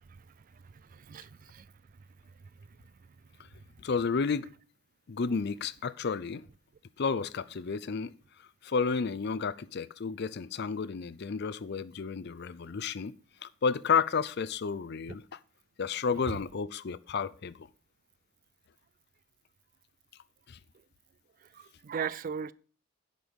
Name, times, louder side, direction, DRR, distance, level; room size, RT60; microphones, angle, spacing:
voice 1, 0.9-1.6 16.3-16.4 21.5-22.5, right 6 dB, 40° right, 0.3 m, -37 dB
voice 2, 3.8-4.5 5.1-6.4 7.0-8.1 8.6-13.1 13.4-15.4 15.8-17.7 20.5-20.6, left 5 dB, 50° left, 0.5 m, -31 dB
10.0 x 5.4 x 6.2 m
head